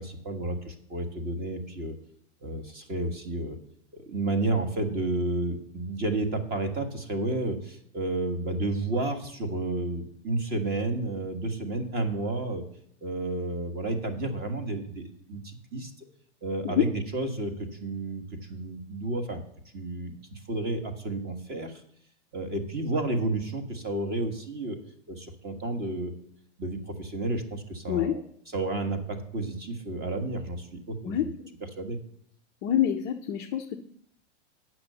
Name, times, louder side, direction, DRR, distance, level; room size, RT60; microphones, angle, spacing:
voice 1, 0.0-1.9 2.4-3.6 3.9-12.6 13.0-16.1 16.4-19.4 19.7-21.8 22.3-24.8 25.1-26.1 26.6-28.2 28.5-31.2 31.8-32.0, right 2 dB, 25° right, 8 dB, 1.5 m, -31 dB
voice 2, 27.9-28.2 31.0-31.3 32.6-33.8, left 10 dB, 20° left, 3 dB, 0.3 m, -26 dB
8.7 x 6.1 x 6.7 m, 0.68 s
hypercardioid pair, 140°, 36 cm